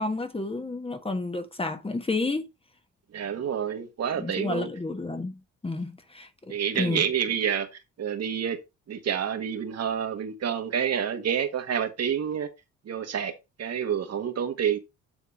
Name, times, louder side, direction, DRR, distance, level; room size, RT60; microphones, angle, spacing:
voice 1, 0.0-2.5 4.2-7.1, left 2 dB, 20° left, 1.4 m, -31 dB
voice 2, 3.1-4.7 6.5-7.7 8.0-8.6 8.9-12.5 12.8-13.3 13.6-14.8, right 8 dB, 55° right, 1.7 m, -28 dB
9.3 x 3.8 x 4.9 m
cardioid pair, 90°, 30 cm